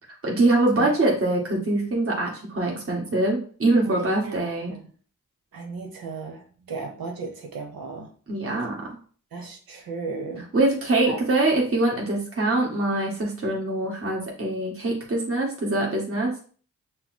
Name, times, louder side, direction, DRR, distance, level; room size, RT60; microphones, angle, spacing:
voice 1, 0.2-4.7 8.3-8.9 10.5-16.4, right 2 dB, 40° right, -2 dB, 1.7 m, -23 dB
voice 2, 3.8-4.3 4.7-4.8 5.5-8.1 9.3-10.5 11.1-11.2, right 4 dB, 75° right, 2 dB, 1.0 m, -35 dB
5.5 x 2.1 x 4.4 m, 0.43 s
supercardioid pair, 40°, 36 cm